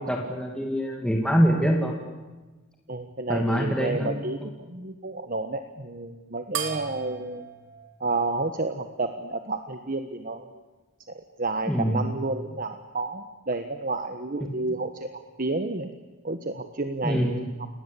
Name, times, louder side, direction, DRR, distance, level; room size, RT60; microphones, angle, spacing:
voice 1, 0.0-1.9 3.3-4.1 11.7-12.1 17.0-17.4, equal, 5° left, 0 dB, 2.5 m, -24 dB
voice 2, 2.9-7.5 8.0-10.6 11.1-15.1 15.4-15.9 16.2-17.7, right 3 dB, 40° right, 7 dB, 1.3 m, -31 dB
sound 1, 6.5-9.3, right 7 dB, 60° right, 2.7 m, -38 dB
29.5 x 19.0 x 8.5 m, 1.2 s
head